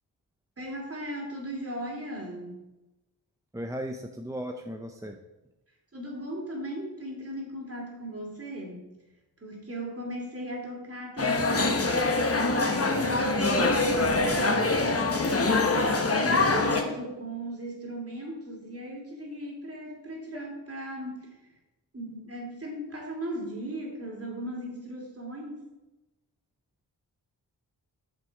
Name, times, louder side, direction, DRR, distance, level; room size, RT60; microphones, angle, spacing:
voice 1, 0.6-2.6 5.9-8.9 9.4-12.2 12.7-21.4 21.9-25.7, right 1 dB, 35° right, -1 dB, 2.7 m, -37 dB
voice 2, 3.5-5.2, equal, 10° right, 4 dB, 0.6 m, -36 dB
sound 1, 11.2-16.8, left 3 dB, 35° left, 1.2 m, -24 dB
7.9 x 6.7 x 4.7 m, 1.0 s
wide cardioid pair, 85°, 41 cm